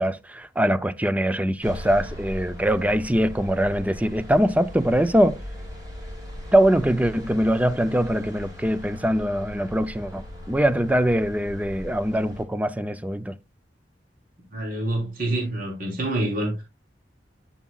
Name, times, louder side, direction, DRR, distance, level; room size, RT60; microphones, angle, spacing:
voice 1, 0.0-5.4 6.5-13.3, equal, 10° right, 0.5 m, -22 dB
sound 1, 1.6-12.4, left 1 dB, 25° right, 5.5 m, -39 dB
voice 2, 14.5-16.6, right 1 dB, 50° right, 3.5 m, -27 dB
11.0 x 7.2 x 2.3 m
head